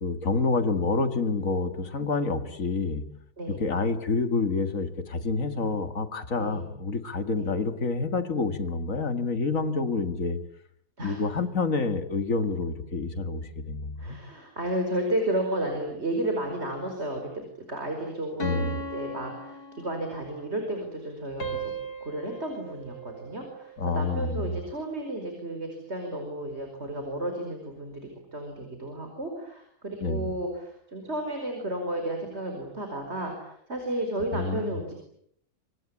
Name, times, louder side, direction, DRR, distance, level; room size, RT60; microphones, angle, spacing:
voice 1, 0.0-3.0 3.5-10.4 11.0-14.2 18.4-18.8 23.8-24.5 30.0-30.3 34.3-34.8, left 4 dB, 55° left, 10 dB, 2.3 m, -28 dB
voice 2, 14.0-21.7 22.0-34.9, right 1 dB, 40° right, 4 dB, 5.3 m, -33 dB
sound 1, 18.4-20.4 21.4-23.8, right 2 dB, 75° left, 3.4 m, -38 dB
27.5 x 24.0 x 8.7 m, 0.70 s
omnidirectional pair, 1.7 m